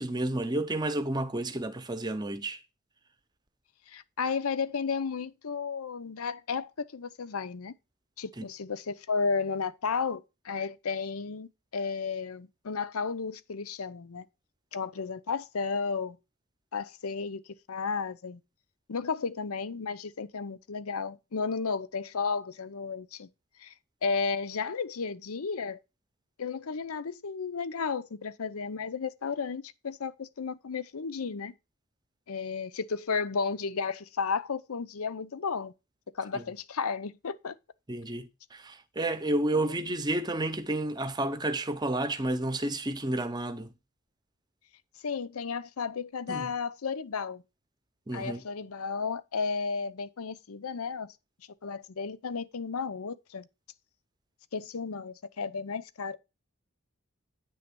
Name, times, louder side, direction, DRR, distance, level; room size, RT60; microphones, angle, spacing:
voice 1, 0.0-2.6 8.4-8.5 36.3-36.4 37.9-43.7 46.3-46.5 48.1-48.4, right 1 dB, 20° right, 0.7 m, -31 dB
voice 2, 3.9-7.7 8.2-14.3 14.7-16.2 16.7-17.4 17.7-18.4 18.9-23.3 23.6-23.7 24.0-25.8 26.4-31.5 32.3-35.7 36.2-37.5 39.5-39.7 45.0-47.4 48.1-51.1 51.6-53.5 54.5-56.2, left 5 dB, 85° left, 0.6 m, -33 dB
9.2 x 3.5 x 6.8 m
head